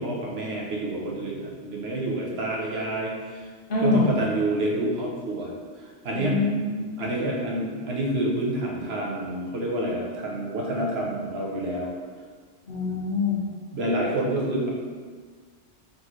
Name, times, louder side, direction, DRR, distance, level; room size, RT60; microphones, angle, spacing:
voice 1, 0.0-3.5 3.8-5.5 6.0-6.4 7.0-11.9 13.7-14.7, right 1 dB, 70° right, -2 dB, 1.0 m, -28 dB
voice 2, 3.7-4.2 6.1-6.9 12.7-13.6, left 3 dB, 55° left, -4 dB, 1.0 m, -25 dB
4.0 x 3.8 x 3.1 m, 1.5 s
omnidirectional pair, 1.1 m